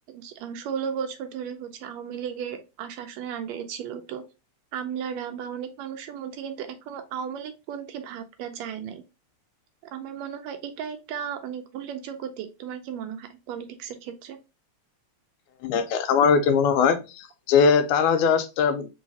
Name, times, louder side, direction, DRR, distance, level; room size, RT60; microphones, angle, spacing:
voice 1, 0.0-4.2 4.7-9.0 9.9-14.4, right 8 dB, 80° right, 8 dB, 1.6 m, -35 dB
voice 2, 15.6-18.9, left 6 dB, 90° left, 8 dB, 2.1 m, -21 dB
4.7 x 3.1 x 2.7 m, 0.27 s
omnidirectional pair, 3.4 m